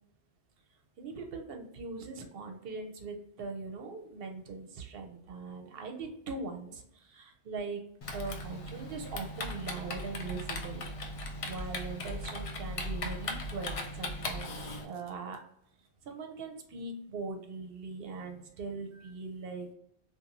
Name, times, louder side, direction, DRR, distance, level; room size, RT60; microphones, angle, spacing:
voice 1, 1.0-7.8 8.1-10.8 11.5-15.4 16.1-19.7, right 3 dB, 70° right, 4 dB, 0.8 m, -41 dB
Typing, 8.0-14.8, left 1 dB, 60° left, 0.3 m, -38 dB
2.6 x 2.4 x 2.8 m, 0.73 s
omnidirectional pair, 1.1 m